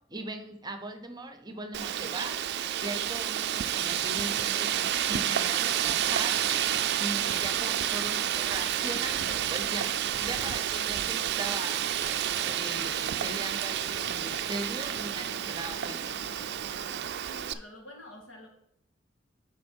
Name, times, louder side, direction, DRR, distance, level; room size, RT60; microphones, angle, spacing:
voice 1, 0.1-16.2, right 2 dB, 20° right, 7 dB, 0.8 m, -39 dB
Wind, 1.7-17.5, right 10 dB, 60° right, 0.4 m, -30 dB
sound 1, 3.8-17.1, left 3 dB, 70° left, 0.7 m, -51 dB
voice 2, 17.3-18.5, left 1 dB, 90° left, 1 dB, 1.8 m, -48 dB
7.8 x 5.0 x 4.6 m, 0.72 s
head